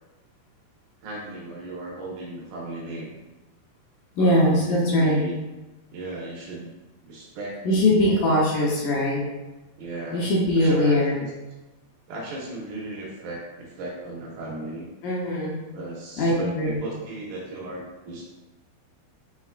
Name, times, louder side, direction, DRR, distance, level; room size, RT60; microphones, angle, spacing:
voice 1, 1.0-3.2 4.2-5.3 5.9-6.7 7.0-8.3 9.8-10.3 10.6-11.3 12.1-14.9 15.7-18.2, right 2 dB, 75° right, -3 dB, 2.4 m, -36 dB
voice 2, 4.2-5.2 7.6-9.2 10.1-11.2 15.0-15.6 16.2-16.8, left 1 dB, 70° left, -6 dB, 2.0 m, -21 dB
5.9 x 3.4 x 2.4 m, 1.1 s
omnidirectional pair, 4.5 m